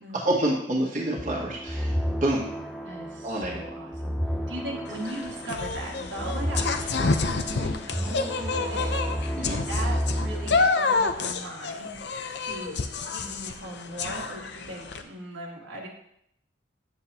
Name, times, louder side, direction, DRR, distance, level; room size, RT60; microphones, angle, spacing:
voice 1, 0.1-2.4 3.2-3.6 9.4-9.6, right 1 dB, 40° right, -4 dB, 1.7 m, -27 dB
sound 1, 1.2-10.7, equal, ahead, 0.6 m, -32 dB
voice 2, 2.8-4.2 4.5-8.9 9.5-12.0 12.4-12.8 13.1-15.9, right 1 dB, 75° right, -3 dB, 1.9 m, -38 dB
sound 2, 4.9-15.0, left 4 dB, 60° left, 0.6 m, -29 dB
9.5 x 7.8 x 2.9 m, 0.74 s
head